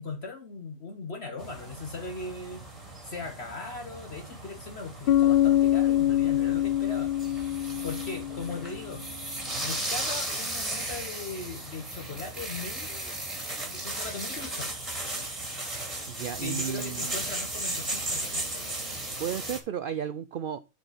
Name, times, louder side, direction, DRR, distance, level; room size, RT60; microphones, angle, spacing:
voice 1, 0.0-2.6 3.0-7.1 7.8-9.0 9.6-13.2 13.6-14.7 16.4-18.8, left 4 dB, 50° left, 1.3 m, -39 dB
sound 1, 1.4-19.6, right 1 dB, 25° right, 2.2 m, -36 dB
Bass guitar, 5.1-8.9, left 12 dB, 65° left, 0.6 m, -25 dB
voice 2, 16.1-17.1 19.2-20.6, right 9 dB, 90° right, 0.4 m, -33 dB
7.5 x 5.1 x 5.0 m
omnidirectional pair, 1.5 m